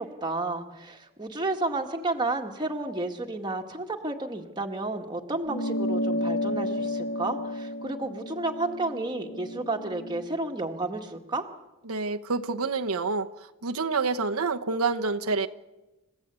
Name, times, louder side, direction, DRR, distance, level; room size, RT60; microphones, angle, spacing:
voice 1, 0.0-11.4, right 2 dB, 20° right, 2 dB, 1.9 m, -31 dB
sound 1, 5.5-10.3, left 1 dB, 45° left, 1.2 m, -31 dB
voice 2, 11.9-13.3 13.6-15.5, right 4 dB, 80° right, 4 dB, 1.1 m, -27 dB
30.0 x 15.5 x 8.3 m, 1.0 s
head